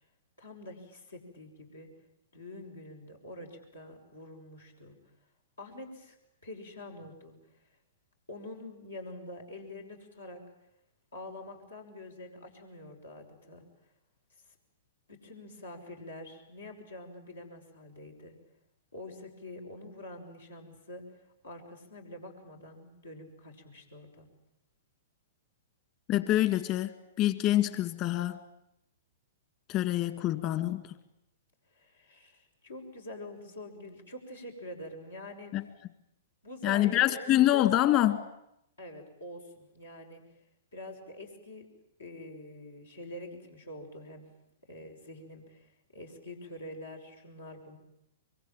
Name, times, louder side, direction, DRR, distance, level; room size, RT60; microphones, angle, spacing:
voice 1, 0.4-1.9 2.3-5.0 5.6-6.2 6.4-7.3 8.3-10.4 11.1-13.6 15.1-18.3 18.9-21.1 21.4-24.3 31.7-35.6 36.4-37.3 38.8-40.2 40.7-41.7 42.0-44.3 44.7-47.8, left 1 dB, 85° left, 2 dB, 5.9 m, -46 dB
voice 2, 26.1-28.4 29.7-30.9 35.5-35.6 36.6-38.3, left 14 dB, 40° left, 11 dB, 2.1 m, -26 dB
24.5 x 23.0 x 9.1 m, 0.80 s
hypercardioid pair, 115°, 0 cm